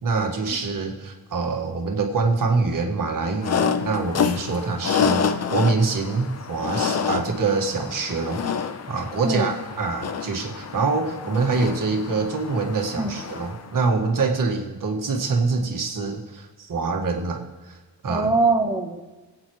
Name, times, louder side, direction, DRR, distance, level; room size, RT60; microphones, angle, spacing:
voice 1, 0.0-17.8 18.0-18.3, right 4 dB, 60° right, 2 dB, 1.8 m, -25 dB
sound 1, 3.4-13.7, left 6 dB, 45° left, 0.7 m, -28 dB
voice 2, 18.1-19.0, right 3 dB, 10° right, 4 dB, 1.1 m, -22 dB
24.5 x 8.6 x 3.1 m, 1.2 s
wide cardioid pair, 150°, 37 cm